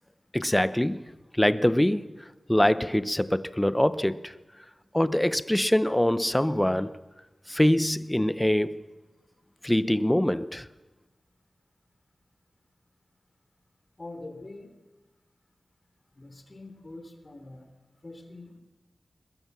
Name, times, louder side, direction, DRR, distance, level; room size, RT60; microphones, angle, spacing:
voice 1, 0.3-1.0 1.3-2.0 2.5-4.3 4.9-6.9 7.5-8.8 9.6-10.7, left 1 dB, 10° left, 0.8 m, -24 dB
voice 2, 14.0-14.8 16.1-17.7 18.0-18.6, left 2 dB, 35° left, 3.4 m, -44 dB
22.0 x 21.0 x 7.0 m
wide cardioid pair, 80°, 0 cm